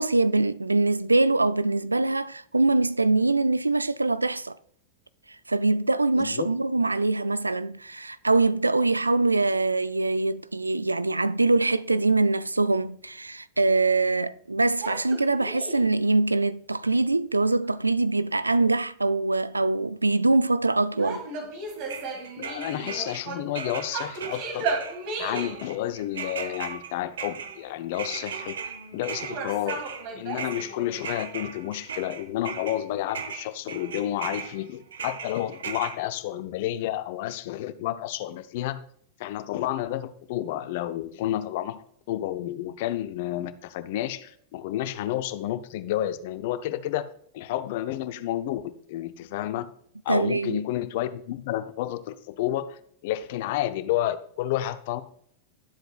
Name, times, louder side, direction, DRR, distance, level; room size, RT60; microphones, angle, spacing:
voice 1, 0.0-4.6 5.5-21.2 50.1-50.6, right 2 dB, 80° right, 0.3 m, -23 dB
sound 1, 14.8-15.9 20.9-23.5 23.9-25.7 29.2-30.9, right 3 dB, 45° right, 2.0 m, -34 dB
sound 2, 21.8-23.2 23.6-32.8 33.1-36.0, right 6 dB, 65° right, 0.9 m, -37 dB
voice 2, 22.4-24.6 25.2-28.6 28.9-29.8 30.1-38.8 39.2-47.1 47.3-49.7 50.0-55.0, left 13 dB, 50° left, 0.6 m, -30 dB
12.0 x 7.7 x 2.4 m
figure-of-eight pair, 90°, 0 cm